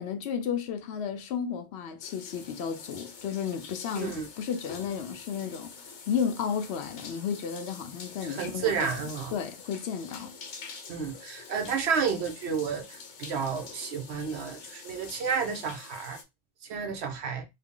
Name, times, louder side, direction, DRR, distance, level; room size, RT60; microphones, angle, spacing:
voice 1, 0.0-5.7 6.1-9.0 9.3-10.3, left 7 dB, 70° left, 0.8 m, -33 dB
sound 1, 2.0-16.2, left 5 dB, 90° left, 1.1 m, -46 dB
voice 2, 4.0-4.3 8.2-9.3 10.9-16.2 16.7-17.5, right 6 dB, 70° right, 1.0 m, -31 dB
3.3 x 2.1 x 3.6 m
omnidirectional pair, 1.2 m